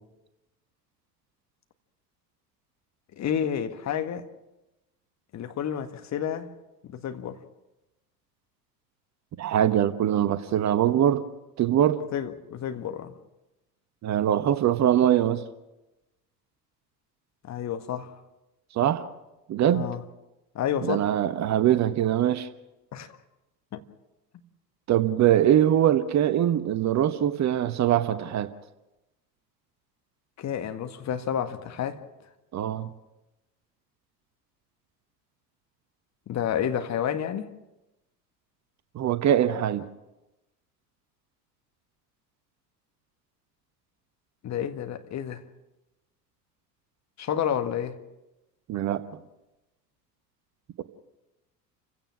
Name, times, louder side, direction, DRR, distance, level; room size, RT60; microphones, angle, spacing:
voice 1, 3.2-4.3 5.3-6.5 6.9-7.4 12.1-13.1 17.5-18.1 19.7-20.0 20.6-21.1 22.9-23.2 23.7-23.8 30.4-32.0 36.3-37.5 44.4-45.4 47.2-48.0, left 9 dB, 35° left, 1.8 m, -30 dB
voice 2, 9.4-11.2 11.6-12.0 14.0-15.4 18.7-19.1 19.5-19.8 20.8-22.5 24.9-28.5 32.5-32.9 38.9-39.9 48.7-49.2, right 11 dB, 35° right, 1.1 m, -23 dB
29.5 x 16.5 x 6.0 m
figure-of-eight pair, 70°, 49 cm